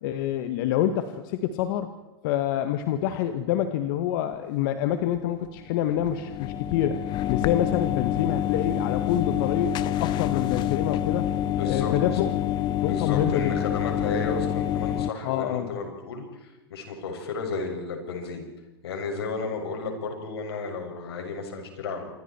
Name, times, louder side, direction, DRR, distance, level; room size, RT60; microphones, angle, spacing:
voice 1, 0.0-1.9 2.2-7.0 7.3-11.3 11.6-12.3 12.8-13.5 15.2-15.8, left 11 dB, 55° left, 9 dB, 1.7 m, -27 dB
sound 1, 5.5-15.1, left 11 dB, 35° left, 0.8 m, -27 dB
voice 2, 11.6-12.2 12.8-18.5 18.8-22.1, left 4 dB, 80° left, 3 dB, 6.7 m, -33 dB
27.5 x 24.5 x 4.6 m, 1.0 s
hypercardioid pair, 125°, 13 cm